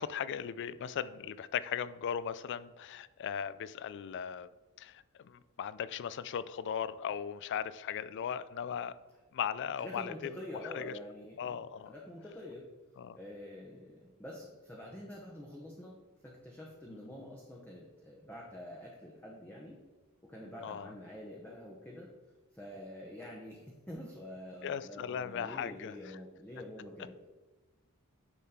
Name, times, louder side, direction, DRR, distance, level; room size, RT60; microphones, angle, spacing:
voice 1, 0.0-4.5 4.8-8.9 9.3-10.1 10.6-10.9 11.4-11.9 13.0-13.2 20.6-20.9 24.6-25.9, left 8 dB, 55° left, 16 dB, 0.3 m, -38 dB
voice 2, 9.8-12.7 13.2-19.8 20.2-22.1 22.5-27.3, left 1 dB, 10° left, -3 dB, 0.8 m, -47 dB
10.0 x 3.7 x 4.3 m, 1.2 s
head